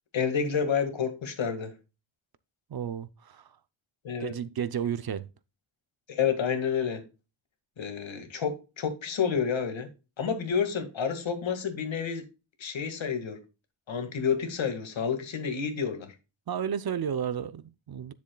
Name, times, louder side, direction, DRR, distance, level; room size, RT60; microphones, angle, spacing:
voice 1, 0.1-1.7 4.0-4.3 6.1-7.0 7.8-9.9 10.2-12.2 12.6-13.4 13.9-16.1, left 7 dB, 70° left, 2.0 m, -29 dB
voice 2, 2.7-3.5 4.2-5.3 16.5-18.1, right 8 dB, 50° right, 0.6 m, -32 dB
9.9 x 7.0 x 2.3 m
wide cardioid pair, 125°, 47 cm